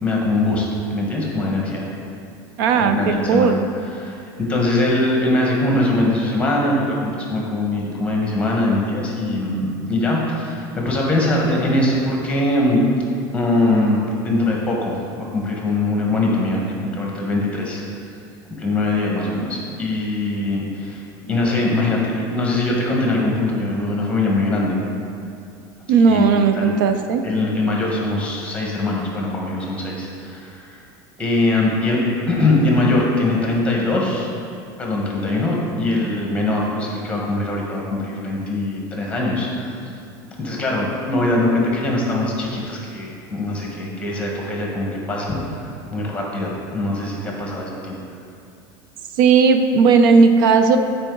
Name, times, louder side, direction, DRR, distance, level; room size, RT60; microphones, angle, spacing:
voice 1, 0.0-0.7 0.9-1.9 2.7-3.5 3.9-12.8 13.3-17.8 18.6-21.0 21.3-24.8 26.1-26.3 26.6-26.7 27.2-30.8 31.2-34.3 34.8-39.7 40.4-48.0, left 2 dB, 10° left, -2 dB, 1.3 m, -22 dB
voice 2, 2.6-3.6 25.9-27.2 49.2-50.8, right 5 dB, 90° right, 7 dB, 0.5 m, -15 dB
8.7 x 4.7 x 3.8 m, 2.6 s
supercardioid pair, 150°, 11 cm